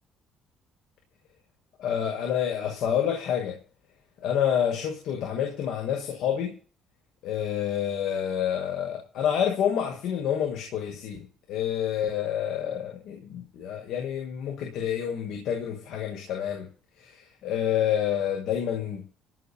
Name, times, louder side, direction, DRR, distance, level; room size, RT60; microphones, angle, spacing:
voice 1, 1.8-3.6 4.2-6.5 7.2-16.7 17.0-19.1, left 9 dB, 75° left, 2 dB, 6.3 m, -28 dB
18.5 x 6.7 x 8.7 m, 0.40 s
cardioid pair, 95°, 0 cm